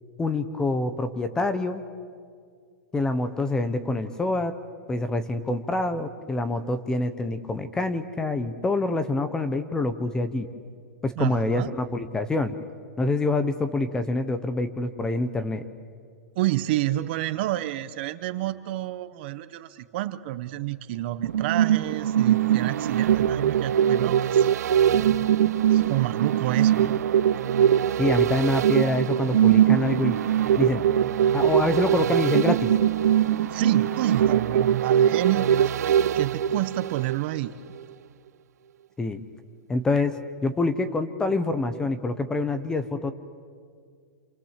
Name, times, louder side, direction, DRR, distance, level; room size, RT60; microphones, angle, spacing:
voice 1, 0.2-1.8 2.9-4.6 4.9-10.5 11.0-12.5 13.0-15.6 28.0-30.2 30.6-30.8 31.3-32.7 39.0-39.2 39.7-43.1, left 2 dB, 10° left, 11 dB, 0.7 m, -26 dB
voice 2, 11.2-11.7 16.3-24.6 25.7-26.9 33.5-37.5, right 15 dB, 40° right, 12 dB, 0.9 m, -29 dB
dark atmosphere, 21.2-37.5 37.8-37.9, right 10 dB, 85° right, 0.6 m, -22 dB
28.0 x 26.0 x 7.4 m, 2.1 s
supercardioid pair, 170°, 9 cm